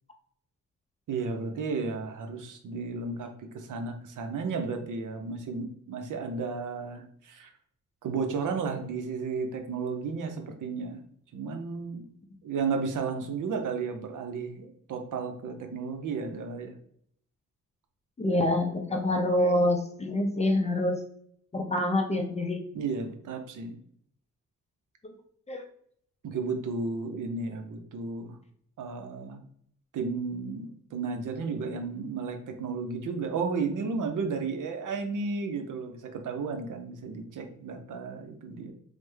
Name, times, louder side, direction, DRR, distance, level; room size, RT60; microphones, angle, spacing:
voice 1, 1.1-7.5 8.0-11.1 11.3-12.0 12.4-16.8 22.7-23.8 26.2-28.4 28.8-29.4 29.9-38.7, right 4 dB, 70° right, 5 dB, 0.6 m, -33 dB
voice 2, 18.2-21.0 21.5-22.6 25.0-25.1 25.5-25.6, left 1 dB, 20° left, 3 dB, 0.4 m, -26 dB
3.2 x 2.1 x 3.1 m, 0.66 s
wide cardioid pair, 115°, 32 cm